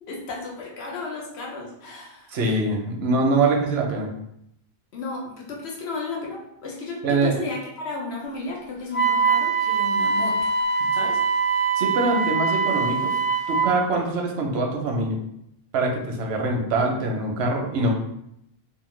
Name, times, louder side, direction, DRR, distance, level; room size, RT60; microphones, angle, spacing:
voice 1, 0.0-2.4 4.9-10.5 10.9-11.2, left 3 dB, 90° left, -2 dB, 1.0 m, -34 dB
voice 2, 2.3-4.1 7.0-7.4 11.8-13.1 13.5-15.2 15.7-17.9, right 2 dB, 85° right, 1 dB, 0.9 m, -23 dB
Wind instrument woodwind instrument, 8.9-13.7, right 5 dB, 50° left, 0.7 m, -23 dB
2.7 x 2.1 x 3.1 m, 0.77 s
omnidirectional pair, 1.0 m